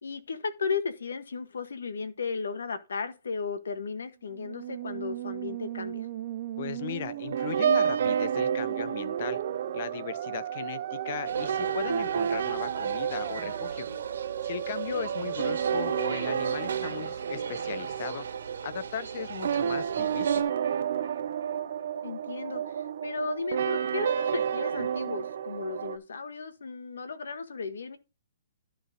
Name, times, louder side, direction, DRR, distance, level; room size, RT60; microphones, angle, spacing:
voice 1, 0.0-6.1 14.9-15.1 22.0-28.0, left 5 dB, 90° left, 1.4 m, -35 dB
Musical instrument, 4.3-17.6, right 12 dB, 40° right, 0.5 m, -37 dB
voice 2, 6.6-9.4 9.7-13.9 14.4-18.3 18.6-20.5, left 9 dB, 45° left, 0.7 m, -37 dB
sound 1, 7.1-26.0, right 8 dB, 60° right, 0.8 m, -31 dB
sound 2, 11.2-20.4, right 5 dB, 75° right, 1.7 m, -40 dB
11.5 x 4.1 x 5.1 m
hypercardioid pair, 160°, 0 cm